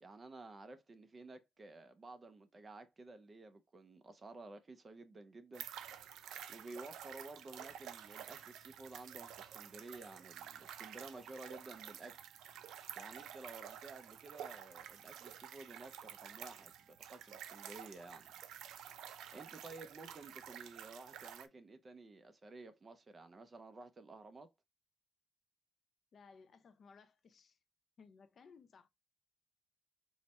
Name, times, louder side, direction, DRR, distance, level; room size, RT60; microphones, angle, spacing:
voice 1, 0.0-5.7 6.5-12.2 13.0-18.3 19.3-24.5, right 3 dB, 25° right, 0.6 m, -53 dB
sound 1, 5.5-21.5, right 9 dB, 90° right, 0.4 m, -51 dB
Wind instrument woodwind instrument, 12.1-17.7, right 9 dB, 70° right, 1.0 m, -72 dB
voice 2, 26.1-27.6 28.0-28.9, left 5 dB, 45° left, 0.5 m, -61 dB
4.5 x 2.2 x 4.1 m
cardioid pair, 140°, 0 cm